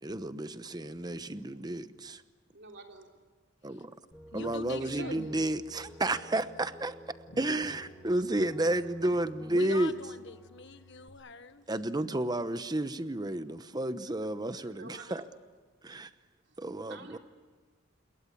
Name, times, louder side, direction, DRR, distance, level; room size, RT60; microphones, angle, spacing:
voice 1, 0.0-2.2 3.6-3.9 4.3-6.9 7.4-9.9 11.7-15.2 15.8-16.1 16.6-17.2, right 1 dB, 20° right, 12 dB, 1.0 m, -31 dB
voice 2, 2.5-3.1 4.8-5.1 14.6-15.3 16.4-17.2, right 3 dB, 60° right, 2 dB, 3.2 m, -50 dB
sound 1, 4.1-11.1, right 1 dB, ahead, 3.2 m, -52 dB
voice 3, 4.3-5.3 7.3-7.5 9.5-11.6, left 3 dB, 65° left, 10 dB, 1.5 m, -43 dB
28.0 x 22.0 x 8.5 m, 1.4 s
head